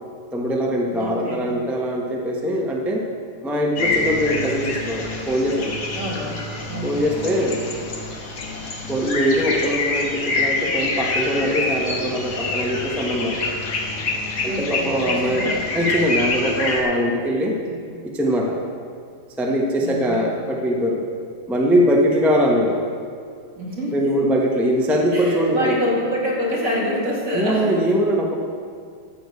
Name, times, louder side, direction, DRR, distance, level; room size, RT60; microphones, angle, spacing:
voice 1, 0.3-3.0 3.4-5.8 6.8-7.6 8.9-13.4 14.4-17.6 18.0-18.6 19.4-21.1 21.5-22.8 23.9-25.8 27.3-28.3, equal, ahead, -1 dB, 0.4 m, -22 dB
voice 2, 0.9-1.5 5.9-7.0 14.4-15.6 17.5-17.8 19.8-20.3 23.6-24.2 25.1-27.8, equal, 35° right, -5 dB, 3.0 m, -27 dB
Sussex Woodland & Meadow Bird Sounds Evening, 3.8-16.8, left 3 dB, 50° left, 1.8 m, -26 dB
14.0 x 4.9 x 8.2 m, 2.2 s
omnidirectional pair, 2.4 m